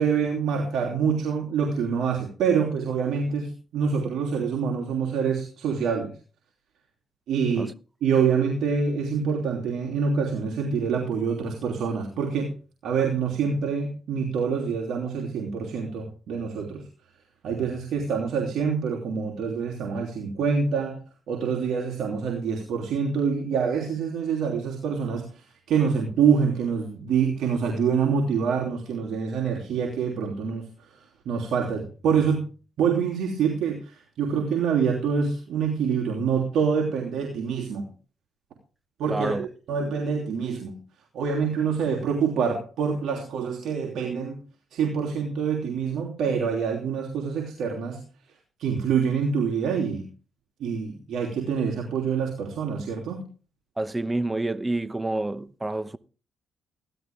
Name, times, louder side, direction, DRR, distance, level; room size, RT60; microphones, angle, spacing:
voice 1, 0.0-6.1 7.3-7.7 8.0-12.5 12.8-16.8 17.4-21.0 21.3-25.3 25.7-30.7 31.2-32.5 32.8-37.9 39.0-40.8 41.1-44.4 44.7-48.0 48.6-50.1 50.6-53.3, right 6 dB, 75° right, 3.0 m, -26 dB
voice 2, 39.1-39.5 53.8-56.0, right 2 dB, 15° right, 0.9 m, -28 dB
15.5 x 12.0 x 3.6 m
cardioid pair, 90°, 0 cm